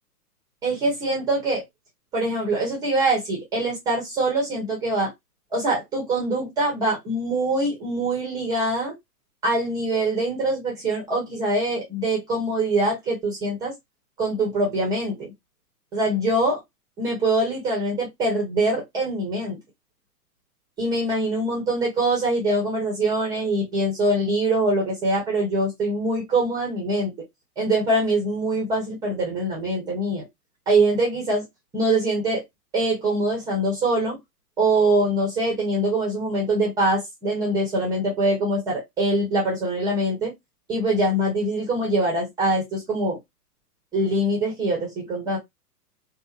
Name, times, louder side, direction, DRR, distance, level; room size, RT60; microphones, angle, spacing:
voice 1, 0.6-1.6 2.1-5.1 5.5-8.9 9.4-13.7 14.2-15.3 15.9-16.6 17.0-19.6 20.8-27.1 27.6-30.2 30.7-31.5 31.7-32.4 32.7-34.1 34.6-40.3 40.7-43.2 43.9-45.4, right 1 dB, 10° right, 0.5 m, -23 dB
2.6 x 2.1 x 2.2 m
hypercardioid pair, 125°, 47 cm